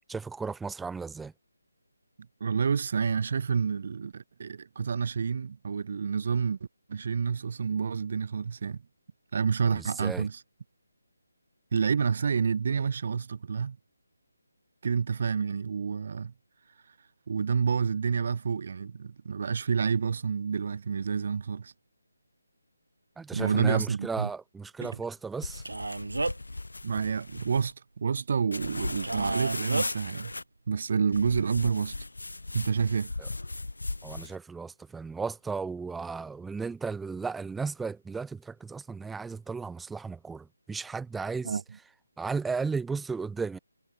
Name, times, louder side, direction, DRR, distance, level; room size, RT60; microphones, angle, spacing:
voice 1, 0.1-1.3 9.7-10.3 23.2-25.6 33.2-33.3 34.0-41.6 42.2-43.6, right 4 dB, 5° right, 1.5 m, -35 dB
voice 2, 2.4-6.6 6.9-8.8 9.3-10.4 11.7-13.8 14.8-16.3 17.3-21.7 23.3-24.3 24.8-25.0 26.8-30.3 30.7-31.9 32.5-33.1 41.4-41.6, right 6 dB, 50° right, 1.4 m, -28 dB
sound 1, 25.4-27.7 28.5-30.4 31.1-34.4, left 2 dB, 85° left, 2.6 m, -37 dB
Male speech man speaking, 25.7-26.5 29.0-29.9, right 3 dB, 80° right, 1.5 m, -31 dB
figure-of-eight pair, 160°, 0 cm